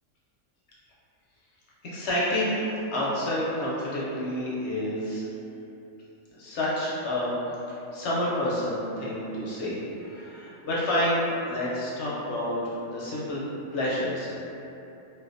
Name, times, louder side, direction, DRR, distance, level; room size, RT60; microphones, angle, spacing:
voice 1, 1.8-5.2 6.3-7.3 7.9-11.2 11.5-12.6 12.9-13.4 13.7-14.3, left 1 dB, 65° left, -7 dB, 0.7 m, -29 dB
2.6 x 2.1 x 2.4 m, 2.8 s
omnidirectional pair, 1.4 m